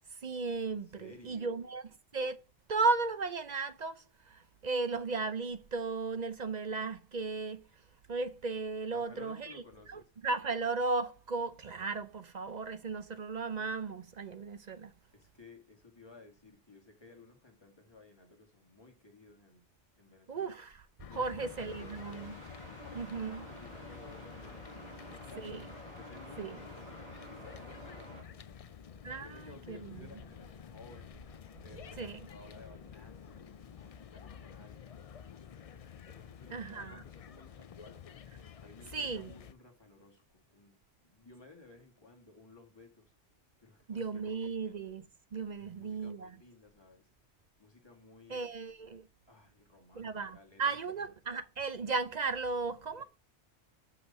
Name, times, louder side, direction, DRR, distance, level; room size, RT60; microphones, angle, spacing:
voice 1, 0.1-2.4 2.7-7.8 8.1-14.9 20.3-20.8 21.1-22.3 22.9-23.4 25.4-25.6 26.4-26.6 29.0-30.1 32.0-32.3 36.5-37.0 38.9-39.3 43.9-45.1 45.3-46.3 48.3-49.1 49.9-53.0, right 4 dB, 50° right, 0.6 m, -35 dB
voice 2, 1.0-1.7 8.9-10.1 15.1-19.6 20.0-20.6 21.0-22.4 22.7-28.7 29.2-31.1 31.6-35.5 36.1-38.1 38.6-40.8 41.0-43.1 43.6-44.6 45.6-47.1 47.6-48.5 49.3-51.0 53.0-53.1, left 3 dB, 20° left, 2.1 m, -56 dB
sound 1, 21.0-39.5, left 8 dB, 55° left, 0.4 m, -50 dB
sound 2, 21.4-28.2, equal, 25° right, 4.2 m, -50 dB
6.4 x 5.8 x 5.3 m
omnidirectional pair, 1.2 m